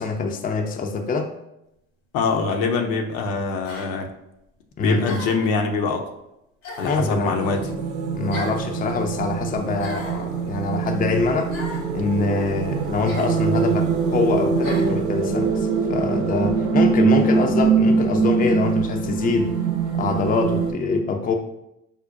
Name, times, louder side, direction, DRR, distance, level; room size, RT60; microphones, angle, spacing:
voice 1, 0.0-1.3 4.8-5.2 6.8-7.6 8.1-11.5 11.9-19.6 20.0-21.3, left 4 dB, 25° left, 4 dB, 0.4 m, -24 dB
voice 2, 2.1-4.1 4.8-6.0 6.8-7.7, left 4 dB, 65° left, 3 dB, 0.6 m, -24 dB
sound 1, 2.2-2.4 3.6-3.9 5.0-5.5 6.6-7.0 8.3-8.6 9.8-10.2 11.5-11.9 13.0-13.3 14.6-14.9, left 1 dB, 80° left, 1.3 m, -36 dB
sound 2, 7.0-20.7, right 5 dB, 70° right, 0.6 m, -23 dB
5.1 x 2.1 x 2.5 m, 0.85 s
hypercardioid pair, 50°, 39 cm